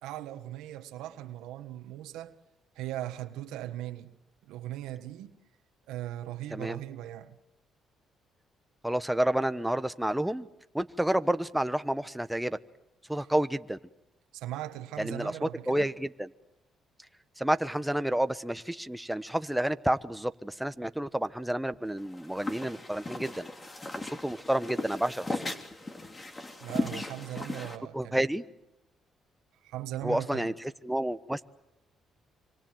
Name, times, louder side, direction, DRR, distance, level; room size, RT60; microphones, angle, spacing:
voice 1, 0.0-2.3 2.7-4.1 4.5-5.3 5.9-7.4 14.3-15.9 26.6-28.2 29.6-30.5, right 13 dB, 90° right, 1.5 m, -39 dB
voice 2, 8.8-10.5 10.7-12.6 13.1-13.8 15.0-16.3 17.4-23.5 24.0-25.4 27.9-28.4 30.0-31.4, right 1 dB, 5° right, 1.2 m, -30 dB
sound 1, 22.0-27.8, left 2 dB, 25° left, 3.1 m, -37 dB
26.5 x 25.5 x 7.7 m
cardioid pair, 80°, 0 cm